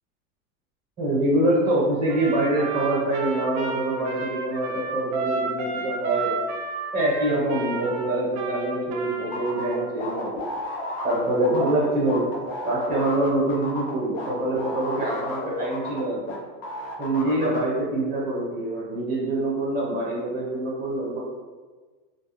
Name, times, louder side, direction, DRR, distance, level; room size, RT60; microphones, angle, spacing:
voice 1, 1.0-6.4 6.9-10.3 11.0-12.3 12.6-16.3 17.0-21.2, right 1 dB, 20° right, -4 dB, 1.0 m, -25 dB
Trumpet, 2.1-9.9, right 4 dB, 70° right, 0.6 m, -32 dB
sound 1, 9.3-16.4 16.6-17.6, left 2 dB, 35° left, 0.4 m, -32 dB
2.4 x 2.1 x 3.3 m, 1.4 s
supercardioid pair, 140°, 44 cm